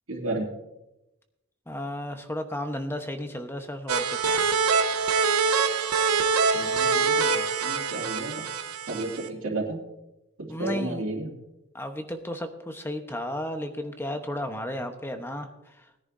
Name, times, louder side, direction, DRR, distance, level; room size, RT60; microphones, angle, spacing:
voice 1, 0.1-0.5 6.5-8.4 8.9-9.8 10.4-11.3, right 2 dB, 65° right, -3 dB, 2.5 m, -32 dB
voice 2, 1.7-4.5 10.5-11.1 11.7-15.9, left 1 dB, 10° left, 6 dB, 1.0 m, -34 dB
sound 1, 3.9-9.3, right 5 dB, 90° right, 0.9 m, -24 dB
20.5 x 10.5 x 2.7 m, 0.92 s
head